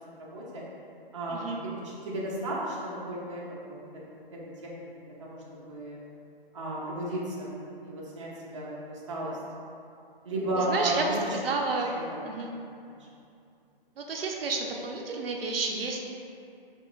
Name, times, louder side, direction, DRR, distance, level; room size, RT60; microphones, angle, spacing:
voice 1, 0.2-0.6 1.1-1.4 2.0-3.8 4.6-4.7 5.2-5.4 5.7-6.0 6.5-7.5 7.8-9.4 10.2-11.0, right 1 dB, 35° right, -6 dB, 0.5 m, -33 dB
voice 2, 1.3-1.6 10.6-11.9 12.2-12.5 14.0-16.0, right 3 dB, 75° right, 1 dB, 0.6 m, -31 dB
3.3 x 2.4 x 3.7 m, 2.6 s
hypercardioid pair, 175°, 29 cm